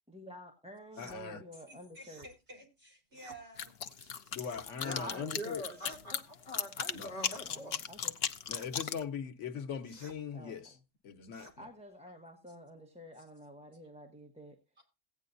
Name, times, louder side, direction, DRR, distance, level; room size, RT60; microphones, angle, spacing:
voice 1, 0.1-2.3 5.1-5.4 7.5-8.1 10.3-10.8 11.6-14.6, equal, 5° right, 1.1 m, -50 dB
sound 1, 0.9-1.2 2.0-2.3 3.1-3.4 4.3-4.7 5.7-6.2 7.1-7.5 8.4-8.7 9.8-10.2 11.3-11.6, right 2 dB, 35° right, 1.6 m, -55 dB
voice 2, 1.0-1.4 4.3-5.7 6.9-7.1 8.5-10.8 11.0-11.5, left 7 dB, 90° left, 1.3 m, -40 dB
voice 3, 1.7-3.7 4.0-4.4, right 1 dB, 60° right, 4.1 m, -53 dB
sound 2, 3.6-9.0, left 8 dB, 60° left, 0.9 m, -36 dB
voice 4, 4.8-7.7, equal, 35° left, 2.4 m, -43 dB
16.5 x 9.2 x 2.6 m
omnidirectional pair, 1.2 m